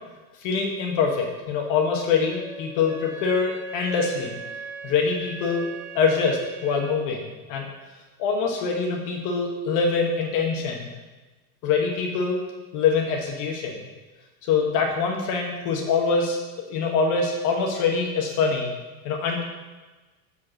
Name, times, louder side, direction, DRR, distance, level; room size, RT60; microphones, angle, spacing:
voice 1, 0.4-4.4 4.8-5.6 5.9-7.6 8.2-10.9 11.6-12.4 12.7-13.8 14.5-16.4 16.7-18.7 19.0-19.4, left 5 dB, 40° left, 0 dB, 1.2 m, -24 dB
Wind instrument woodwind instrument, 2.3-7.0, right 3 dB, 5° right, 0.6 m, -40 dB
7.0 x 4.9 x 6.4 m, 1.2 s
supercardioid pair, 150°, 46 cm